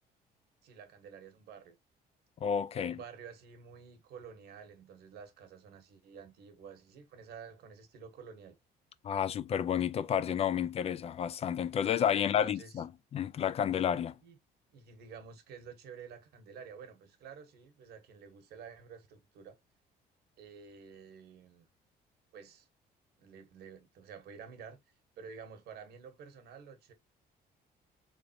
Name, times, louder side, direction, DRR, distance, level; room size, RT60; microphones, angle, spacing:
voice 1, 0.6-1.8 2.7-8.6 12.1-12.8 14.2-14.4 14.7-19.6 20.4-21.7 22.3-22.7 23.2-24.8 25.2-26.9, right 6 dB, 70° right, 1.2 m, -50 dB
voice 2, 2.4-3.0 9.0-14.2, left 9 dB, 40° left, 0.4 m, -31 dB
3.8 x 3.4 x 2.7 m
cardioid pair, 110°, 17 cm